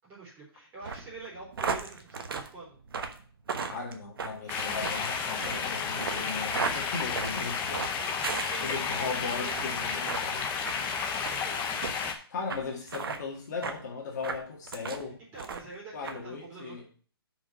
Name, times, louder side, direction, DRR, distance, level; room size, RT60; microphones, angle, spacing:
voice 1, 0.0-2.8 3.5-3.7 7.7-11.0 11.4-11.7 15.0-16.8, right 3 dB, 15° right, -6 dB, 4.0 m, -47 dB
sound 1, 0.8-9.1 9.4-9.7 10.1-10.2 10.6-10.8 11.2-11.4 11.8-11.9 12.5-12.6 12.9-13.2 13.6-13.8 14.2-15.0 15.4-15.7 16.0-16.2, right 5 dB, 65° right, 1.1 m, -35 dB
voice 2, 3.7-7.8 8.6-10.4 12.3-15.2 15.9-16.8, left 4 dB, 45° left, -1 dB, 1.9 m, -37 dB
sound 2, 4.5-12.1, left 5 dB, 15° left, 0.7 m, -32 dB
5.8 x 5.2 x 6.2 m, 0.43 s
hypercardioid pair, 155°, 13 cm